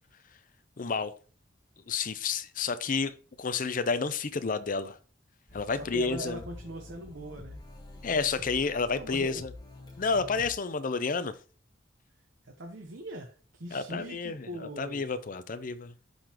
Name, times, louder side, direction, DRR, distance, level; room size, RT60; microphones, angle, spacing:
voice 1, 0.8-1.1 1.9-5.0 5.5-6.4 8.0-9.5 10.0-11.3 13.7-15.9, left 4 dB, 45° left, 0.6 m, -30 dB
sound 1, 5.5-10.5, left 2 dB, 20° left, 1.4 m, -47 dB
voice 2, 5.5-7.6 8.9-9.4 12.4-15.2, right 1 dB, 80° right, 1.0 m, -41 dB
11.5 x 3.9 x 2.9 m
head